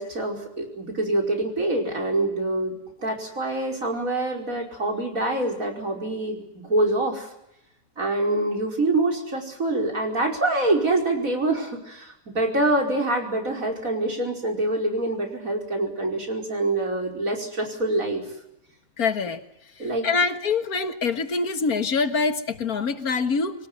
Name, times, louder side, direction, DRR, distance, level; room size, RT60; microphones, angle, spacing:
voice 1, 0.0-7.3 8.0-18.2 19.8-20.1, right 2 dB, 70° right, 2 dB, 5.6 m, -25 dB
voice 2, 19.0-19.4 20.0-23.5, left 4 dB, 90° left, 10 dB, 2.2 m, -24 dB
24.5 x 19.0 x 9.7 m, 0.82 s
omnidirectional pair, 1.5 m